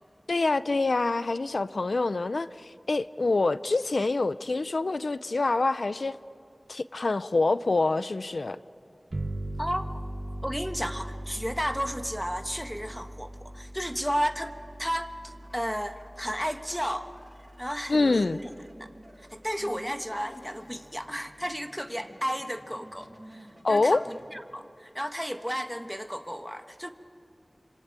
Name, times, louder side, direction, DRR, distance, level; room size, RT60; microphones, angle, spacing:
voice 1, 0.3-6.2 6.7-8.6 17.9-18.4 23.6-24.0, left 3 dB, 85° left, 0.6 m, -26 dB
sound 1, 9.1-18.4, right 1 dB, 55° right, 1.9 m, -40 dB
voice 2, 10.4-17.1 17.6-18.4 19.2-26.9, equal, ahead, 1.2 m, -33 dB
sound 2, 15.2-24.4, right 1 dB, 20° right, 1.9 m, -53 dB
26.5 x 25.0 x 8.9 m
wide cardioid pair, 60°, 0 cm